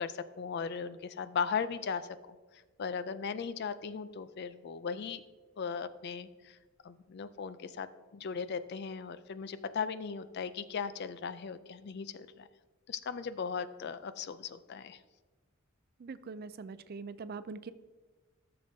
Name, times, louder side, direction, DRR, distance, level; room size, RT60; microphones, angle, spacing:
voice 1, 0.0-2.4 2.8-5.2 5.6-6.6 6.8-12.5 12.9-15.0, left 6 dB, 50° left, 13 dB, 0.4 m, -37 dB
voice 2, 16.0-17.7, right 4 dB, 45° right, 14 dB, 0.4 m, -43 dB
14.0 x 6.8 x 2.7 m, 1.3 s
head